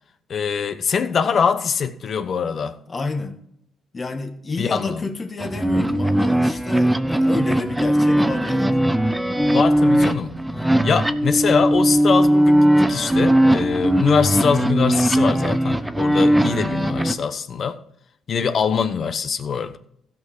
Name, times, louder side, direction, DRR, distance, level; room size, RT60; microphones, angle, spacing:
voice 1, 0.3-2.8 4.6-5.0 9.5-10.4 10.8-17.8 18.3-19.8, left 6 dB, 55° left, 1.0 m, -23 dB
voice 2, 2.9-3.4 3.9-8.8 10.5-10.9 16.2-16.6, left 3 dB, 30° left, 1.6 m, -30 dB
sound 1, 5.4-17.1, right 1 dB, 5° right, 0.9 m, -19 dB
15.5 x 6.0 x 4.8 m
cardioid pair, 90°, 0 cm